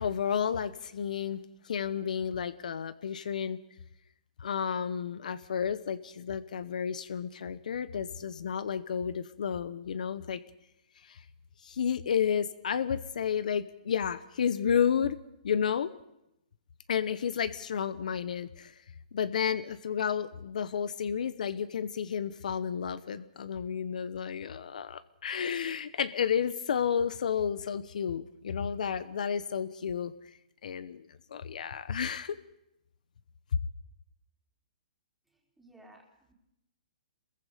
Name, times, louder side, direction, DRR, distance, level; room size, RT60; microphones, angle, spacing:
voice 1, 0.0-3.6 4.4-10.4 11.0-11.2 11.6-15.2 15.4-15.9 16.9-18.7 19.1-30.1 30.6-31.1 31.3-32.4, left 7 dB, 70° left, 15 dB, 1.0 m, -31 dB
voice 2, 35.3-36.3, right 1 dB, 5° right, -1 dB, 3.6 m, -57 dB
27.0 x 21.5 x 5.1 m, 0.84 s
hypercardioid pair, 160°, 4 cm